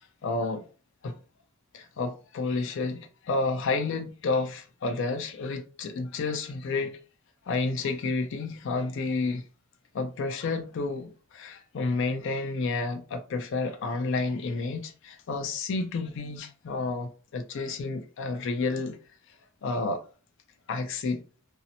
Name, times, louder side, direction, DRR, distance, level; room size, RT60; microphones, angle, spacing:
voice 1, 0.2-0.6 1.0-1.1 1.7-3.0 3.3-7.0 7.5-9.4 9.9-19.0 19.6-20.0 20.7-21.2, left 3 dB, 60° left, 0.4 m, -30 dB
2.7 x 2.0 x 2.6 m
head